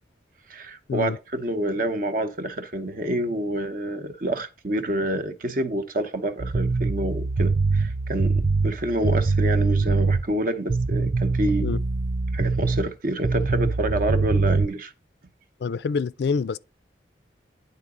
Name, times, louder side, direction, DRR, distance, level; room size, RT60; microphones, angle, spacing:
voice 1, 0.5-11.8 12.3-14.9, right 1 dB, 50° right, 0.9 m, -28 dB
sound 1, 6.4-10.3 10.7-12.9 13.2-14.7, right 3 dB, 35° right, 0.3 m, -23 dB
voice 2, 15.6-16.6, left 5 dB, 65° left, 0.3 m, -26 dB
9.6 x 3.9 x 3.7 m
head